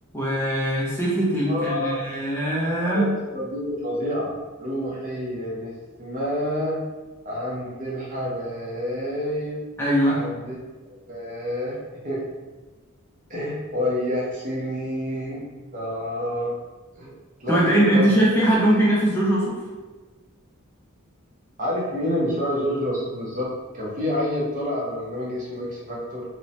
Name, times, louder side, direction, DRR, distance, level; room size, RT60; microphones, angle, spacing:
voice 1, 0.1-3.1 9.8-10.2 17.5-19.6, right 1 dB, 10° left, -6 dB, 0.4 m, -21 dB
voice 2, 1.5-2.0 2.8-5.7 6.0-6.8 7.2-9.6 10.0-10.6 10.8-11.8 12.0-12.2 13.3-15.4 15.7-16.5 17.0-17.1 17.4-18.1 21.6-23.5 23.7-26.2, equal, 35° right, -5 dB, 0.7 m, -28 dB
3.0 x 2.0 x 2.7 m, 1.3 s
head